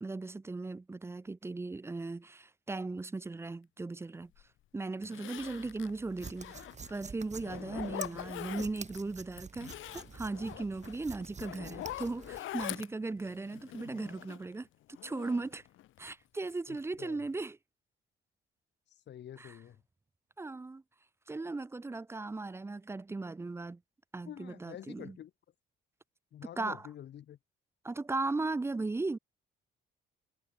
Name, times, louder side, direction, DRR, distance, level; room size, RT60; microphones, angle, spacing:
voice 1, 0.0-4.3 4.7-14.7 15.0-15.6 16.0-17.6 19.4-19.5 20.4-20.8 21.3-23.8 24.1-25.2 26.6-26.8 27.8-29.2, right 3 dB, 15° right, 0.4 m, -37 dB
Zipper (clothing), 4.4-4.5 5.0-7.0 7.4-9.0 9.4-14.5 14.9-16.1 16.5-17.0 17.3-17.4, left 14 dB, 85° left, 1.5 m, -44 dB
sound 1, 5.4-12.4, right 5 dB, 35° right, 4.7 m, -48 dB
voice 2, 16.7-17.2 18.9-19.8 24.3-25.3 26.3-27.4, left 11 dB, 60° left, 1.2 m, -48 dB
cardioid pair, 90°, 20 cm